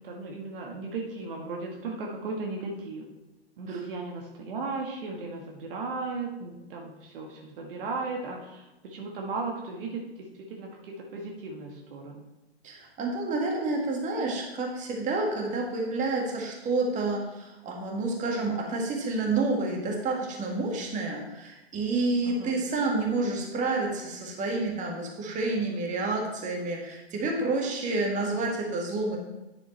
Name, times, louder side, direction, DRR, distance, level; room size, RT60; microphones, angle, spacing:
voice 1, 0.0-3.0 3.6-12.3 22.2-22.5, right 3 dB, 55° right, 0 dB, 1.6 m, -36 dB
voice 2, 12.6-29.2, right 3 dB, 25° right, -1 dB, 1.9 m, -29 dB
9.9 x 7.1 x 3.3 m, 0.98 s
figure-of-eight pair, 105°, 32 cm